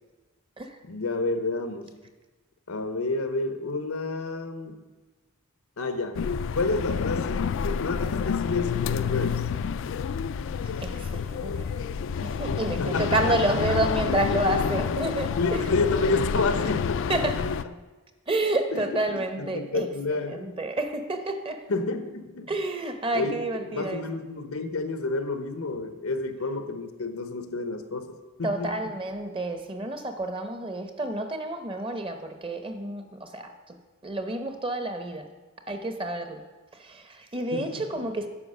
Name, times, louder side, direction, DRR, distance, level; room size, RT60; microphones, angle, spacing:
voice 1, 0.8-1.9 2.7-4.8 5.8-6.3 6.5-9.5 12.8-13.6 15.4-17.2 18.7-20.5 21.7-22.5 23.1-23.4 23.7-28.9 37.5-37.9, left 3 dB, 90° left, 9 dB, 0.9 m, -30 dB
sound 1, 6.1-17.6, left 6 dB, 60° left, 0.3 m, -28 dB
voice 2, 10.6-11.8 12.2-15.8 17.1-17.4 18.3-19.9 20.2-21.6 22.5-24.0 28.4-33.5 34.0-35.3 35.7-36.4 36.7-38.3, right 1 dB, 25° right, 6 dB, 0.8 m, -29 dB
9.8 x 5.7 x 6.5 m, 1.2 s
head